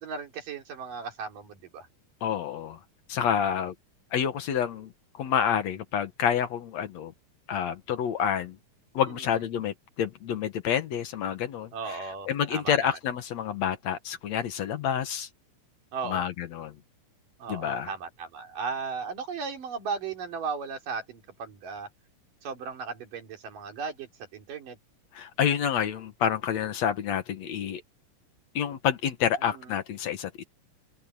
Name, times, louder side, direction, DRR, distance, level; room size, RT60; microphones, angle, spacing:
voice 1, 0.0-1.9 3.4-3.7 11.7-12.8 15.9-16.3 17.4-21.9 22.4-24.8 29.4-29.7, right 5 dB, 80° right, 5.1 m, -36 dB
voice 2, 2.2-2.8 3.1-3.7 4.1-4.9 5.2-7.1 7.5-8.6 8.9-12.0 12.3-15.3 16.1-16.7 17.5-17.9 25.1-27.8 28.6-30.4, left 8 dB, 60° left, 2.4 m, -28 dB
open air
omnidirectional pair, 3.8 m